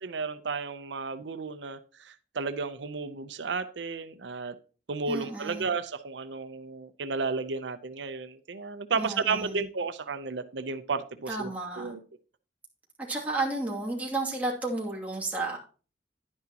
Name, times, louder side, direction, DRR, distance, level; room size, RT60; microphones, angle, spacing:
voice 1, 0.0-4.5 4.9-12.0, right 4 dB, 90° right, 11 dB, 0.7 m, -33 dB
voice 2, 5.1-5.7 8.9-9.7 11.3-12.0 13.1-15.7, right 2 dB, 10° right, -3 dB, 2.5 m, -32 dB
10.5 x 9.8 x 2.9 m, 0.37 s
head